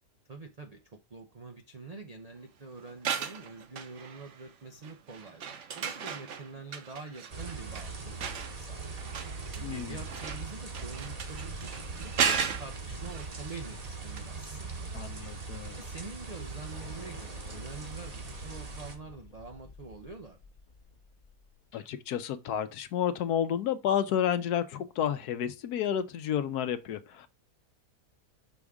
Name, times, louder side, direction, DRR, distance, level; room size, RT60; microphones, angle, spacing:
voice 1, 0.3-8.9 9.6-14.9 15.7-20.4, right 3 dB, 80° right, 0.3 m, -46 dB
sound 1, 2.9-4.5 4.8-13.9 14.2-14.3, right 7 dB, 55° right, 0.9 m, -36 dB
sound 2, 7.3-18.9, right 4 dB, 30° right, 0.8 m, -40 dB
voice 2, 9.6-10.0 14.9-15.8 21.7-27.3, left 9 dB, 75° left, 1.1 m, -31 dB
sound 3, 15.2-15.4 15.7-21.9, left 4 dB, 35° left, 0.9 m, -54 dB
6.2 x 3.5 x 4.8 m
omnidirectional pair, 1.8 m